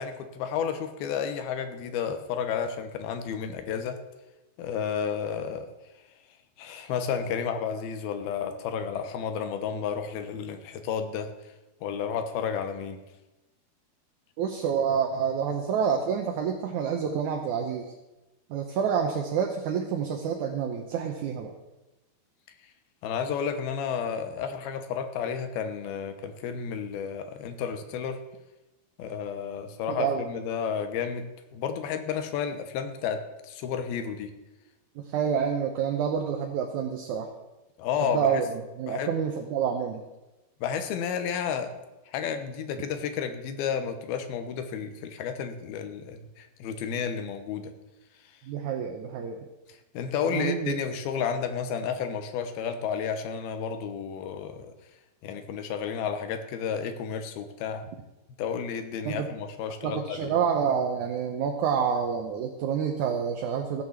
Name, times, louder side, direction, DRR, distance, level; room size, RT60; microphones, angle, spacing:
voice 1, 0.0-4.0 4.6-5.7 6.6-11.3 11.8-13.0 23.0-28.2 29.0-34.3 37.8-38.4 38.9-39.1 40.6-41.7 42.1-47.7 49.9-54.7 55.2-57.8 58.4-60.3, left 7 dB, 80° left, 8 dB, 2.9 m, -31 dB
voice 2, 14.4-17.9 18.5-21.5 29.9-30.2 35.0-37.3 38.1-40.0 48.4-49.5 50.3-50.8 59.1-59.3 59.8-63.8, right 7 dB, 70° right, 3 dB, 1.9 m, -28 dB
15.5 x 6.6 x 7.3 m, 1.0 s
omnidirectional pair, 4.4 m